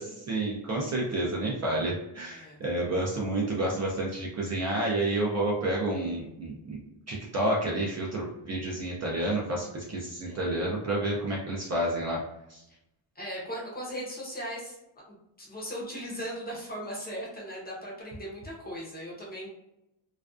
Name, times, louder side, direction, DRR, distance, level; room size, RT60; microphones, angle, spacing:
voice 1, 0.0-6.8 7.1-12.2 12.5-12.6, right 1 dB, 35° right, -2 dB, 0.4 m, -30 dB
voice 2, 13.2-14.8 15.4-19.5, equal, 20° left, -4 dB, 0.6 m, -38 dB
2.4 x 2.2 x 2.4 m, 0.87 s
wide cardioid pair, 160°, 48 cm